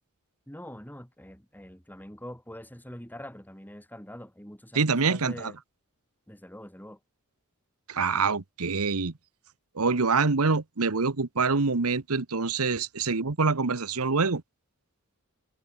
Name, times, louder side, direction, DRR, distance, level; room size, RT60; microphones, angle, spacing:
voice 1, 0.5-5.6 6.3-7.0, equal, 10° left, 6.2 m, -44 dB
voice 2, 4.7-5.5 7.9-9.1 9.7-14.4, right 4 dB, 80° right, 1.2 m, -25 dB
head